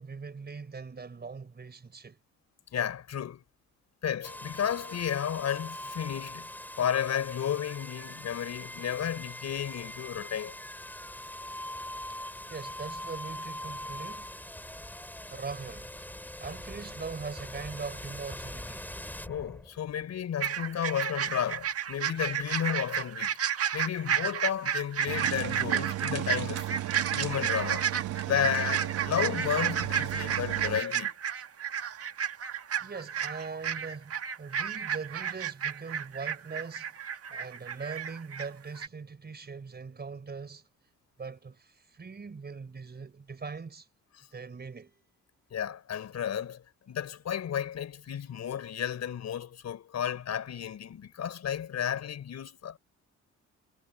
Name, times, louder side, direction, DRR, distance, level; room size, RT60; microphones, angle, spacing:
voice 1, 0.0-2.2 12.2-14.4 15.3-15.9 16.4-18.9 32.8-36.9 37.3-40.6 41.2-43.9 44.3-45.0, right 5 dB, 35° right, 4.9 m, -41 dB
voice 2, 2.7-3.4 4.0-6.5 6.8-10.6 19.3-23.4 23.7-26.6 27.1-27.9 28.2-31.1 45.5-52.8, left 9 dB, 60° left, 4.8 m, -32 dB
sound 1, 4.2-20.1, left 1 dB, 5° left, 4.9 m, -42 dB
sound 2, 20.4-38.5 38.7-38.9, right 8 dB, 50° right, 1.6 m, -32 dB
sound 3, 25.1-30.8, right 13 dB, 80° right, 1.6 m, -34 dB
cardioid pair, 90°, 30 cm